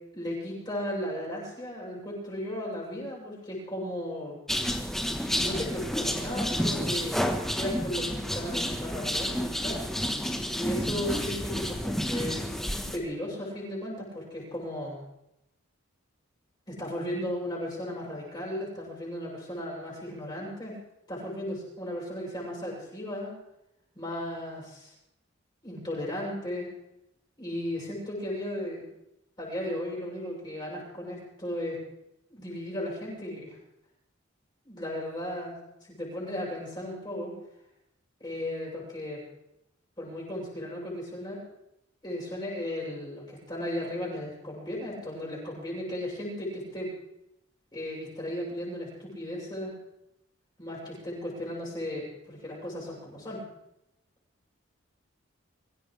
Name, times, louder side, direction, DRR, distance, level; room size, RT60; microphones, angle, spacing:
voice 1, 0.1-4.4 5.3-7.3 7.5-9.8 10.6-12.4 12.8-15.0 16.7-20.8 21.1-23.3 23.9-24.9 25.6-26.7 27.4-28.8 29.4-31.8 32.3-33.6 34.6-35.6 35.9-37.3 38.2-39.2 40.0-41.4 42.0-46.9 47.7-49.7 50.6-53.4, left 1 dB, 20° left, -5 dB, 7.9 m, -35 dB
sound 1, 4.5-13.0, equal, ahead, 1.2 m, -30 dB
24.5 x 16.5 x 3.4 m, 0.85 s
head